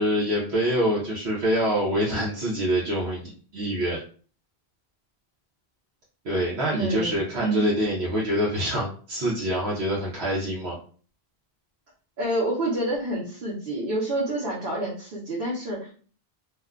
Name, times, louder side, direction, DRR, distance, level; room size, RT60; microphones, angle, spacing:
voice 1, 0.0-4.0 6.2-10.8, equal, 85° right, -5 dB, 1.0 m, -25 dB
voice 2, 6.7-7.7 12.2-15.9, right 1 dB, 60° right, -6 dB, 1.0 m, -28 dB
2.6 x 2.2 x 3.5 m, 0.42 s
omnidirectional pair, 1.1 m